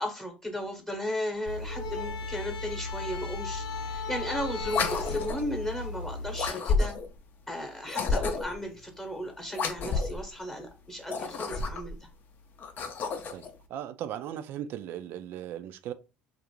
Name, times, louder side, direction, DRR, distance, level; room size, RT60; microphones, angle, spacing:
voice 1, 0.0-3.6 3.9-6.9 7.5-12.0, left 1 dB, 15° left, 0.9 m, -35 dB
sound 1, 1.5-6.5, left 2 dB, 80° left, 0.7 m, -35 dB
sound 2, 4.6-5.5 6.3-7.2 7.9-8.6 9.5-10.2 11.0-12.0 12.6-13.5, left 4 dB, 50° left, 0.5 m, -30 dB
voice 2, 13.7-15.9, right 10 dB, 65° right, 0.3 m, -37 dB
2.5 x 2.1 x 2.9 m
hypercardioid pair, 70°, 4 cm